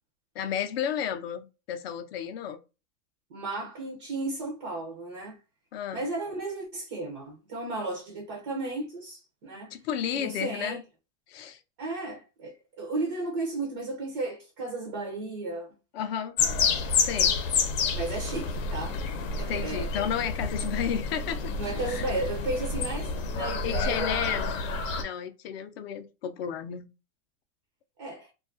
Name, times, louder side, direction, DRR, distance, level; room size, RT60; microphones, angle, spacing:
voice 1, 0.3-2.6 5.7-6.0 9.7-10.8 11.3-11.6 15.9-16.4 17.0-17.4 19.5-22.1 23.6-24.6 25.0-26.9, left 8 dB, 50° left, 0.5 m, -32 dB
voice 2, 3.3-5.4 5.9-9.7 10.1-10.8 11.8-15.7 17.9-19.0 19.3-20.1 21.6-24.4 28.0-28.3, right 2 dB, 25° right, 0.3 m, -34 dB
sound 1, 16.4-25.0, left 5 dB, 80° left, 0.8 m, -29 dB
2.3 x 2.3 x 2.4 m
supercardioid pair, 160°, 39 cm